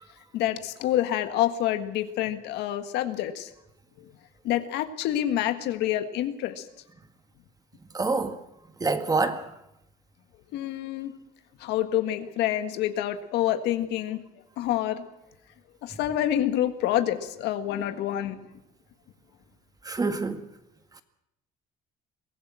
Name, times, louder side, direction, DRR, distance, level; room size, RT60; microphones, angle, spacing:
voice 1, 0.3-3.5 4.0-4.1 4.4-6.7 10.5-11.1 11.6-14.2 14.6-15.0 15.8-18.4, left 12 dB, 85° left, 1.6 m, -27 dB
voice 2, 7.9-8.4 8.8-9.4 19.9-20.5, right 3 dB, 20° right, 1.8 m, -26 dB
23.0 x 15.5 x 7.6 m
cardioid pair, 110°, 17 cm